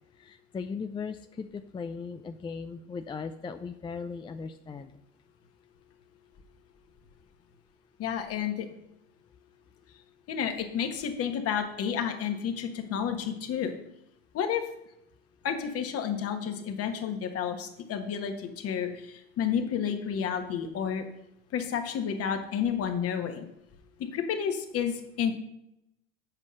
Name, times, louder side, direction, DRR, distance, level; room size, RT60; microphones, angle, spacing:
voice 1, 0.2-4.9, left 5 dB, 15° left, 8 dB, 0.4 m, -38 dB
voice 2, 8.0-8.7 10.3-13.7 14.3-14.6 15.4-21.0 21.5-23.4 24.1-25.3, left 8 dB, 45° left, 6 dB, 1.5 m, -31 dB
8.1 x 5.4 x 6.4 m, 0.82 s
hypercardioid pair, 85°, 33 cm